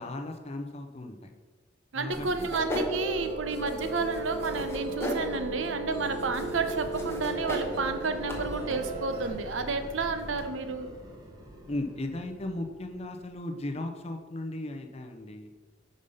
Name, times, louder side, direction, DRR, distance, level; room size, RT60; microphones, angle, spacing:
voice 1, 0.0-1.3 1.9-2.5 11.7-15.5, left 1 dB, 30° left, 5 dB, 0.6 m, -36 dB
voice 2, 1.9-10.9, right 4 dB, 80° right, 8 dB, 0.7 m, -31 dB
sound 1, 2.1-10.5, equal, 15° left, 0.9 m, -38 dB
Musical instrument, 2.9-9.3, right 2 dB, 55° right, 1.5 m, -37 dB
sound 2, 4.3-13.6, equal, 20° right, 0.9 m, -47 dB
5.4 x 5.1 x 5.5 m, 1.4 s
head